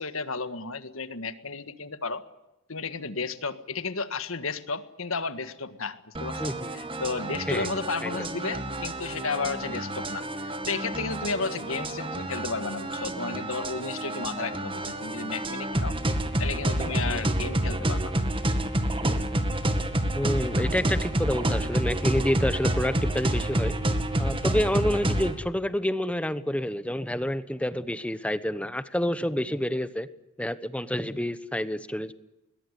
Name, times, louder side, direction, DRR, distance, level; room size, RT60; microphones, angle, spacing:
voice 1, 0.0-2.2 2.7-16.0 16.4-18.2, left 4 dB, 65° left, 11 dB, 1.7 m, -33 dB
sound 1, 6.1-25.3, right 1 dB, 25° right, 2.0 m, -29 dB
voice 2, 6.4-6.7 7.5-7.7 8.0-8.3 20.1-23.7 24.2-30.1 30.4-32.1, equal, 5° left, 13 dB, 1.0 m, -28 dB
21.5 x 21.0 x 9.9 m, 0.95 s
head